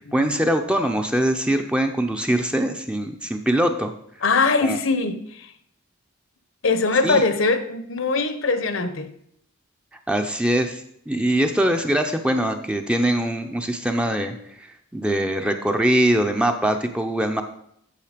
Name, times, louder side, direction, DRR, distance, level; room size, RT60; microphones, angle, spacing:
voice 1, 0.1-3.9 4.6-4.8 7.0-7.2 10.1-14.4 14.9-17.4, right 1 dB, 5° right, 5 dB, 0.5 m, -22 dB
voice 2, 4.2-5.5 6.6-9.1, left 3 dB, 65° left, 10 dB, 0.8 m, -22 dB
8.6 x 6.8 x 5.1 m, 0.70 s
head